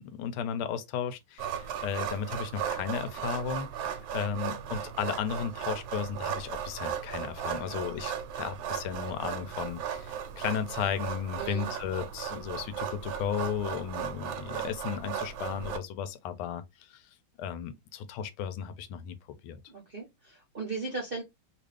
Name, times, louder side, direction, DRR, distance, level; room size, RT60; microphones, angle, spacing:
voice 1, 0.0-17.0 17.4-19.6, left 7 dB, 85° left, 1.5 m, -35 dB
sound 1, 1.4-15.8, right 8 dB, 75° right, 1.4 m, -36 dB
voice 2, 11.4-11.7 19.7-21.2, right 4 dB, 50° right, 0.7 m, -37 dB
3.4 x 2.5 x 3.2 m
omnidirectional pair, 2.3 m